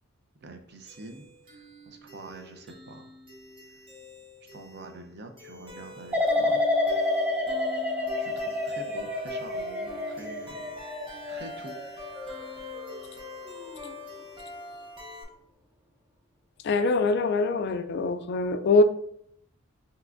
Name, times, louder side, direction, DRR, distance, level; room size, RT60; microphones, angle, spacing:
voice 1, 0.4-3.0 4.5-6.6 8.2-10.8 11.3-11.8, right 2 dB, 50° right, 5 dB, 0.6 m, -45 dB
sound 1, 0.9-15.2, left 2 dB, 25° right, 0.9 m, -44 dB
sound 2, 6.1-13.1 13.5-13.9, left 2 dB, 5° right, 0.4 m, -29 dB
voice 2, 16.6-18.8, left 3 dB, 55° left, 10 dB, 0.3 m, -23 dB
5.7 x 3.0 x 2.5 m, 0.70 s
head